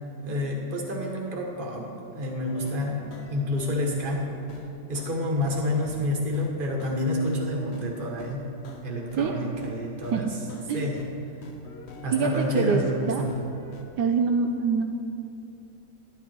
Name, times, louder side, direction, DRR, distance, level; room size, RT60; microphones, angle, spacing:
voice 1, 0.2-4.2 4.9-8.4 8.8-10.3 10.7-11.0 12.0-13.3, left 1 dB, 30° right, 0 dB, 1.4 m, -29 dB
sound 1, 2.4-7.5 7.7-11.1 11.4-13.8, left 4 dB, 50° left, 0.9 m, -45 dB
voice 2, 12.1-12.8 13.1-13.3 14.0-14.8, right 5 dB, 75° right, 4 dB, 1.2 m, -24 dB
11.5 x 9.8 x 4.4 m, 2.7 s
omnidirectional pair, 1.9 m